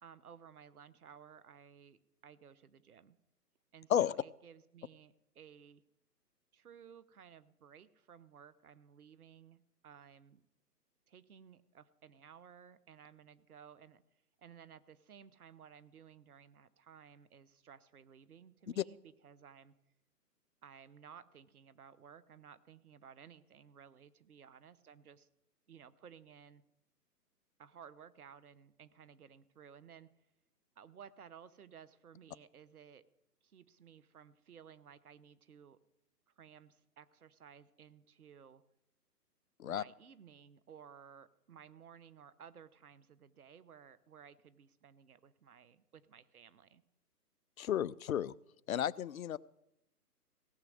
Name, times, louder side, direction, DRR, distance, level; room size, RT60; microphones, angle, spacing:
voice 1, 0.0-3.2 3.7-5.8 6.5-10.4 11.1-14.0 14.4-19.7 20.6-25.3 25.7-26.6 27.6-30.1 30.8-33.0 33.4-35.8 36.4-38.6 39.7-46.8, right 7 dB, 65° right, 17 dB, 0.9 m, -57 dB
voice 2, 47.6-48.3 48.7-49.4, left 10 dB, 60° left, 22 dB, 0.5 m, -32 dB
17.0 x 6.0 x 7.7 m, 0.85 s
figure-of-eight pair, 135°, 48 cm